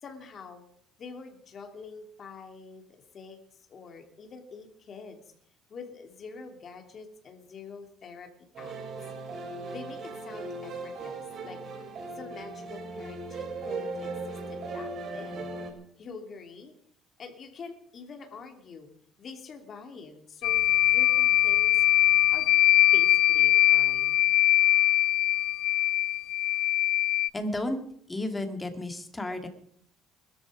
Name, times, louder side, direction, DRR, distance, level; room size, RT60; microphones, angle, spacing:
voice 1, 0.0-0.6 1.0-5.3 5.7-8.3 8.6-8.8 9.7-11.6 12.1-15.5 16.0-16.7 17.2-18.9 19.2-20.6 20.9-21.8 22.3-22.5 22.9-24.2, left 5 dB, 40° left, 5 dB, 2.8 m, -45 dB
sound 1, 8.5-15.7, right 3 dB, 45° right, 4.3 m, -38 dB
sound 2, 20.4-27.3, left 15 dB, 70° left, 0.6 m, -22 dB
voice 2, 27.3-27.8 28.1-29.5, left 1 dB, 10° left, 6 dB, 2.2 m, -32 dB
21.0 x 13.5 x 5.0 m, 0.66 s
cardioid pair, 140°, 0 cm